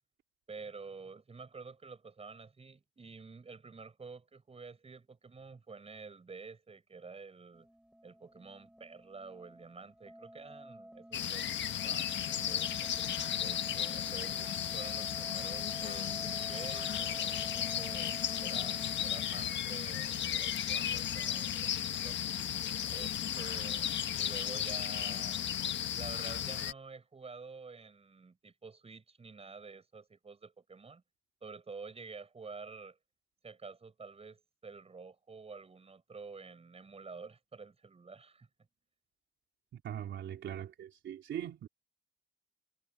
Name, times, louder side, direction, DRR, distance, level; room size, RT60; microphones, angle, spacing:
voice 1, 0.5-7.7 8.0-12.9 13.4-18.1 18.4-22.2 22.9-25.4 25.9-31.0 31.4-33.0 33.4-38.5, right 4 dB, 30° right, 6.9 m, -49 dB
sound 1, 7.5-19.5, equal, 5° right, 7.3 m, -50 dB
sound 2, 11.1-26.7, left 10 dB, 65° left, 1.5 m, -35 dB
voice 2, 39.7-41.7, right 10 dB, 70° right, 3.6 m, -41 dB
cardioid pair, 90°, 20 cm